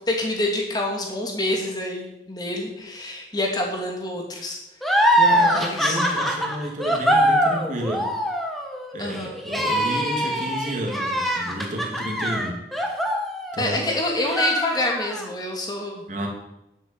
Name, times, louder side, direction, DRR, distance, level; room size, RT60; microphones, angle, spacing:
voice 1, 0.1-4.6 4.9-5.0 5.4-6.0 9.0-9.3 13.6-16.0, left 1 dB, 25° left, 1 dB, 2.5 m, -27 dB
sound 1, 4.8-13.9 14.2-15.3, equal, ahead, 1.5 m, -23 dB
voice 2, 5.2-8.1 8.9-12.6 13.5-13.8 16.1-16.3, right 1 dB, 45° right, 1 dB, 2.6 m, -31 dB
11.0 x 7.9 x 7.2 m, 0.89 s
head